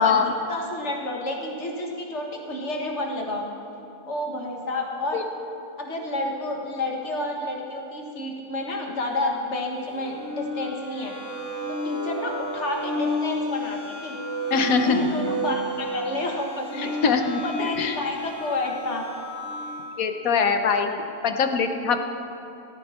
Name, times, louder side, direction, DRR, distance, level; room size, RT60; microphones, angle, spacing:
voice 1, 0.0-3.5 4.1-5.2 5.8-11.1 11.7-14.2 14.5-16.9 17.4-19.1, left 2 dB, 50° left, 1 dB, 1.9 m, -30 dB
sound 1, 9.8-20.0, left 1 dB, 10° left, 1.8 m, -32 dB
voice 2, 14.5-15.0 16.8-17.4 17.8-18.0 20.0-22.0, left 5 dB, 75° left, 6 dB, 1.3 m, -22 dB
15.5 x 14.0 x 4.4 m, 2.8 s
omnidirectional pair, 1.5 m